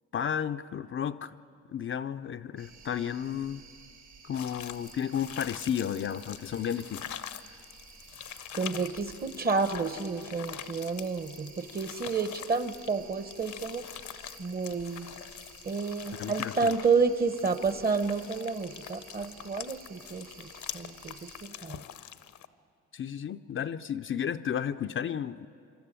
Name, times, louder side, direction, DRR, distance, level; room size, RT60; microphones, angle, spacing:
voice 1, 0.1-1.3 1.7-3.6 4.2-7.1 16.2-16.8 22.9-25.5, left 8 dB, 40° left, 10 dB, 0.5 m, -33 dB
sound 1, 2.6-21.5, right 5 dB, 70° right, 3.5 m, -53 dB
sound 2, 4.3-22.5, left 11 dB, 70° left, 0.8 m, -44 dB
voice 2, 8.5-13.9 14.4-15.1 15.6-21.8, right 4 dB, 30° right, 11 dB, 1.1 m, -30 dB
26.0 x 13.0 x 9.0 m, 2.5 s
cardioid pair, 90°, 30 cm